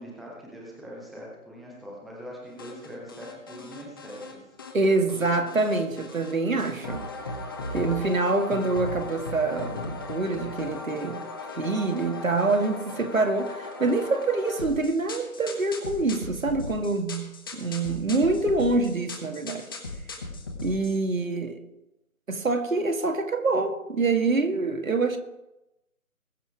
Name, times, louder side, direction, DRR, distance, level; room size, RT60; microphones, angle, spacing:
voice 1, 0.0-4.6, equal, ahead, 0.5 m, -42 dB
sound 1, 2.6-4.3 4.6-6.3 6.6-21.0, left 3 dB, 15° left, 1.0 m, -37 dB
voice 2, 4.7-7.0 7.7-11.2 11.6-19.7 20.6-21.6 22.3-25.2, right 3 dB, 65° right, 1.9 m, -26 dB
20.5 x 7.0 x 4.7 m
figure-of-eight pair, 150°, 43 cm